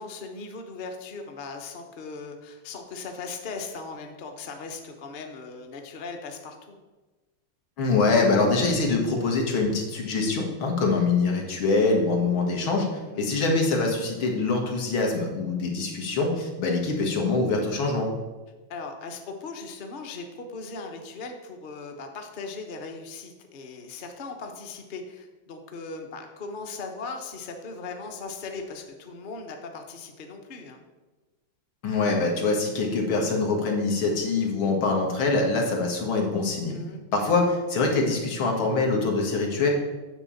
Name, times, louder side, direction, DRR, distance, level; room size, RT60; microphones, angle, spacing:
voice 1, 0.0-6.8 12.9-13.2 18.7-30.8 36.7-37.0, left 4 dB, 45° left, 4 dB, 0.6 m, -38 dB
voice 2, 7.8-12.9 13.2-18.1 31.8-36.8 37.1-39.7, left 3 dB, 85° left, 1 dB, 2.3 m, -24 dB
9.1 x 3.7 x 7.0 m, 1.2 s
omnidirectional pair, 2.2 m